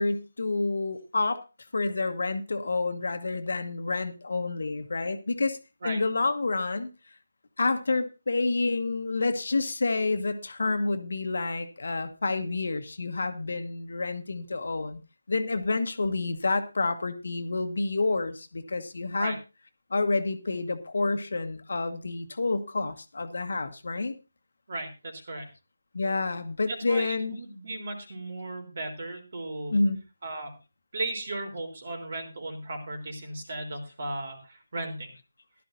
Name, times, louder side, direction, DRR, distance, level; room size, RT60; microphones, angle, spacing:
voice 1, 0.0-1.4 1.7-5.6 5.8-6.9 7.6-15.0 15.3-19.4 19.9-24.1 25.9-27.4 29.7-30.0, left 3 dB, 60° left, 9 dB, 1.4 m, -28 dB
voice 2, 24.7-25.5 26.7-29.7 30.2-30.5 30.9-35.1, right 2 dB, 45° right, 4 dB, 3.8 m, -36 dB
15.0 x 12.0 x 2.7 m, 0.28 s
figure-of-eight pair, 155°, 0 cm